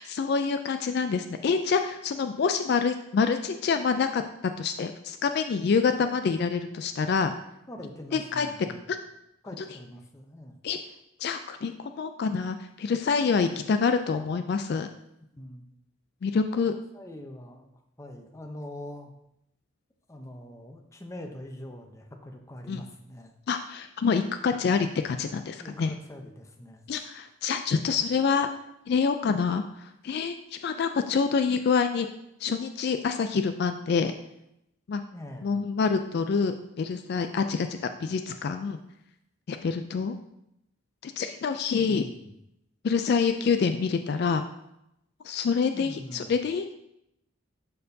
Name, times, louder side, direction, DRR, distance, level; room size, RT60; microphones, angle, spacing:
voice 1, 0.0-7.3 8.1-8.5 8.9-9.0 9.6-9.7 10.6-10.8 11.2-14.9 16.2-16.7 22.7-22.8 23.5-25.9 26.9-28.5 28.9-32.1 32.4-34.1 34.9-35.0 35.4-38.8 39.5-40.2 41.0-42.1 42.8-44.4 45.2-46.7, left 5 dB, 50° left, 8 dB, 0.3 m, -26 dB
voice 2, 7.7-8.9 9.4-10.6 15.4-15.7 16.9-17.7 18.0-19.1 20.1-23.3 25.6-26.8 35.1-35.5 41.8-42.3 45.7-46.3, left 1 dB, 15° left, 3 dB, 0.6 m, -43 dB
12.0 x 4.4 x 2.7 m, 0.82 s
head